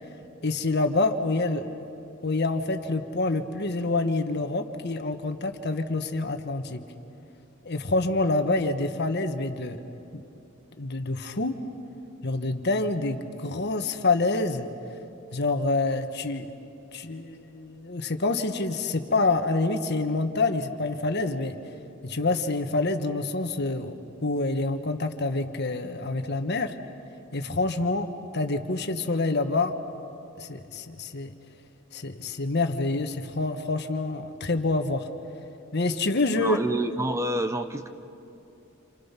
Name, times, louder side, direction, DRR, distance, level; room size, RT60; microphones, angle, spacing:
voice 1, 0.4-1.6 2.2-6.8 7.6-9.8 10.8-11.5 12.2-14.7 15.3-16.5 16.9-21.5 22.0-23.9 24.2-26.7 27.3-29.7 30.4-31.3 31.9-35.0 35.7-36.6, left 3 dB, 55° left, 7 dB, 1.4 m, -27 dB
voice 2, 36.3-37.9, right 1 dB, 15° right, 8 dB, 0.8 m, -28 dB
29.0 x 28.5 x 5.9 m, 2.8 s
head